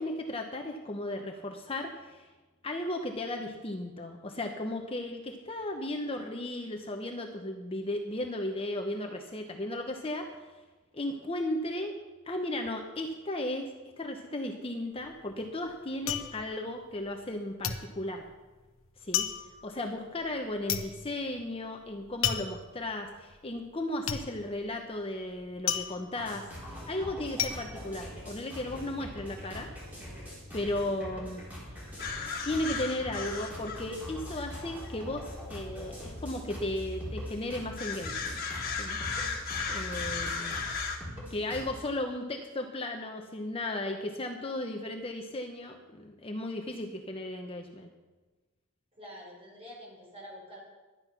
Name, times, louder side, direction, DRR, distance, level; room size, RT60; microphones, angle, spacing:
voice 1, 0.0-2.3 2.6-10.4 10.9-11.9 12.3-18.3 19.0-19.3 19.6-26.5 26.9-29.7 30.5-31.4 32.4-38.4 38.8-39.0 39.7-40.5 41.3-47.9, left 1 dB, 25° left, 3 dB, 0.9 m, -35 dB
sound 1, 14.9-17.3 17.6-28.8 29.1-29.7, left 9 dB, 80° left, 1.1 m, -35 dB
sound 2, 26.2-41.8, equal, 10° right, 4.3 m, -43 dB
sound 3, 32.0-41.0, left 4 dB, 45° left, 1.7 m, -37 dB
voice 2, 48.9-50.6, equal, 30° right, -3 dB, 5.0 m, -47 dB
11.5 x 10.5 x 5.9 m, 1.2 s
head